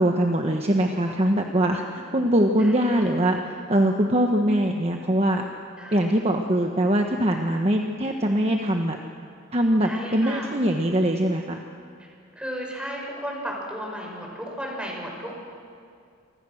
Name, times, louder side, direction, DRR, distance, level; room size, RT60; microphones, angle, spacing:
voice 1, 0.0-3.4 3.7-5.5 5.9-9.0 9.5-11.6, right 1 dB, 30° right, 3 dB, 1.3 m, -22 dB
voice 2, 2.6-3.0 5.8-6.3 9.8-10.5 12.4-15.3, equal, 5° right, -1 dB, 5.7 m, -34 dB
29.0 x 24.5 x 6.5 m, 2.3 s
head